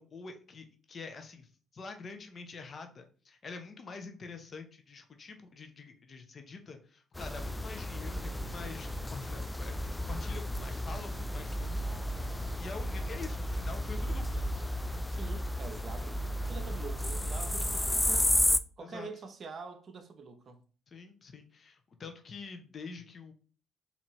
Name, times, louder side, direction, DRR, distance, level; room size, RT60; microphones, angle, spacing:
voice 1, 0.0-11.8 12.1-14.5 18.8-19.1 20.9-23.3, left 4 dB, 45° left, 0.9 m, -46 dB
sound 1, 7.2-18.6, left 1 dB, 10° left, 0.4 m, -33 dB
voice 2, 15.1-16.2 16.5-18.2 18.8-20.6, right 4 dB, 50° right, 0.8 m, -45 dB
4.4 x 2.8 x 3.1 m
hypercardioid pair, 55°, 0 cm